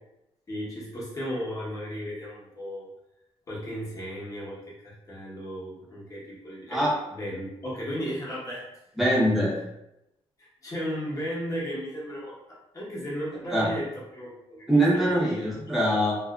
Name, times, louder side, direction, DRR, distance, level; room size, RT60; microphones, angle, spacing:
voice 1, 0.5-2.9 3.5-6.8 7.1-8.7 9.5-9.6 10.4-14.7 14.9-15.5 16.0-16.1, equal, 30° left, -6 dB, 1.1 m, -35 dB
voice 2, 9.0-9.5 13.5-13.7 14.7-16.1, right 1 dB, ahead, -7 dB, 0.9 m, -22 dB
2.7 x 2.4 x 2.3 m, 0.88 s
cardioid pair, 135°, 11 cm